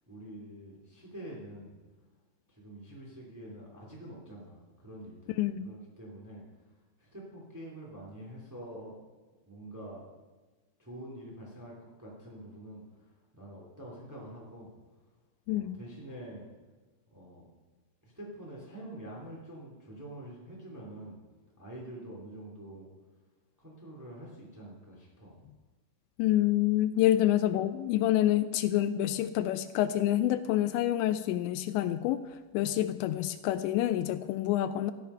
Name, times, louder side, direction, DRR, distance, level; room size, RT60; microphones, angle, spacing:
voice 1, 0.1-1.7 2.5-6.4 7.0-9.0 9.5-10.1 10.8-12.8 13.3-14.7 15.5-16.4 17.1-17.4 18.0-21.2 21.6-22.9 23.6-25.4, right 1 dB, 15° right, -4 dB, 0.6 m, -46 dB
voice 2, 5.3-5.7 15.5-15.8 26.2-32.2 32.5-34.9, left 13 dB, 85° left, 12 dB, 2.6 m, -27 dB
14.0 x 11.0 x 5.5 m, 1.2 s
omnidirectional pair, 5.5 m